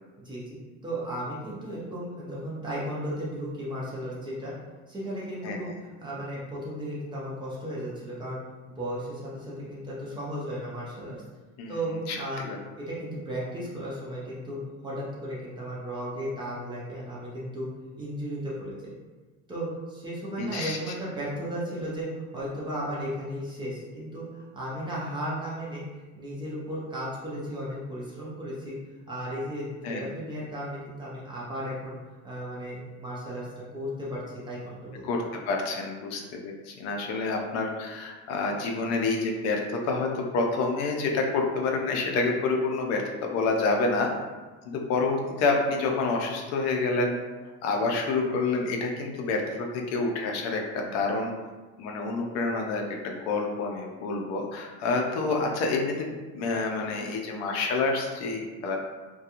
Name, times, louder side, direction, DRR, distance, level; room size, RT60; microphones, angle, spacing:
voice 1, 0.2-4.5 4.9-8.4 8.7-11.2 11.7-12.4 12.7-14.6 14.8-17.7 18.0-18.9 19.5-25.8 26.1-28.8 29.1-32.0 32.2-35.0, equal, 15° right, -7 dB, 0.4 m, -35 dB
voice 2, 5.4-5.7 11.6-11.8 12.1-12.6 20.4-20.8 29.8-30.1 35.0-44.1 44.6-47.2 47.6-51.3 51.8-58.8, left 3 dB, 65° left, 1 dB, 0.5 m, -28 dB
2.4 x 2.2 x 2.8 m, 1.3 s
cardioid pair, 180°, 29 cm